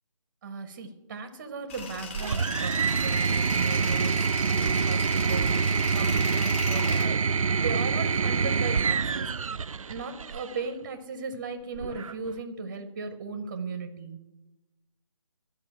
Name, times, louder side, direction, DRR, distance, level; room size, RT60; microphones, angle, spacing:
voice 1, 0.4-14.3, right 4 dB, 20° right, 8 dB, 0.7 m, -37 dB
Tools, 1.7-7.1, left 3 dB, 20° left, 1.2 m, -38 dB
sound 1, 2.1-10.6 11.8-12.4, right 5 dB, 75° right, 0.4 m, -26 dB
12.0 x 5.2 x 8.4 m, 1.0 s
figure-of-eight pair, 155°, 18 cm